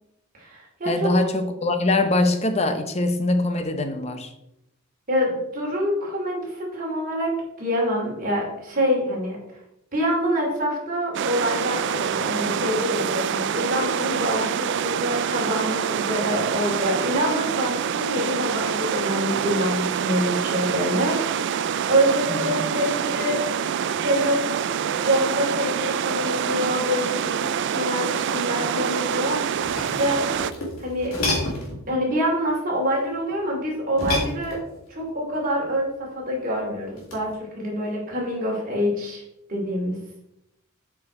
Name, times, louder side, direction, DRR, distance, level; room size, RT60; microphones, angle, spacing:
voice 1, 0.3-1.1 5.1-7.3 7.6-9.4 9.9-21.5 21.9-23.6 23.8-29.5 29.8-30.3 30.8-31.2 31.9-34.6 34.9-39.2 39.5-40.0, equal, 40° right, 2.7 m, -26 dB
voice 2, 0.9-4.3 22.3-22.6, left 2 dB, 30° left, 0.8 m, -23 dB
sound 1, 11.1-30.5, right 8 dB, 55° right, 0.3 m, -26 dB
sound 2, 29.4-31.8 33.9-34.9 37.0-37.3, left 1 dB, 85° left, 2.7 m, -29 dB
7.9 x 4.7 x 4.3 m
head